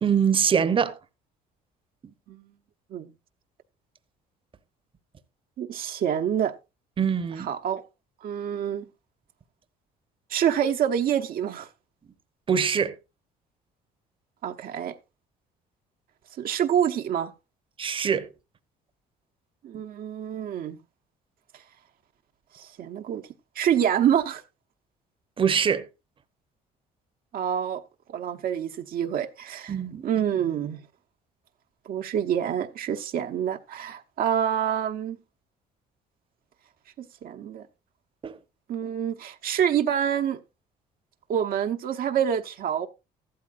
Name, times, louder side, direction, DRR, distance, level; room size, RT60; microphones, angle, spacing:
voice 1, 0.0-1.0 7.0-7.5 12.5-12.9 17.8-18.3 25.4-25.9 29.7-30.0 38.2-38.3, right 7 dB, 30° right, 0.9 m, -23 dB
voice 2, 5.6-6.5 7.4-7.8 8.2-8.9 10.3-11.7 14.4-14.9 16.4-17.3 19.6-20.8 22.5-23.2 23.5-24.4 27.3-27.8 28.1-29.8 30.0-30.8 31.9-35.2 37.2-37.7 38.7-40.4 41.3-42.9, right 9 dB, 60° right, 0.9 m, -27 dB
14.0 x 12.5 x 2.5 m
cardioid pair, 110°, 17 cm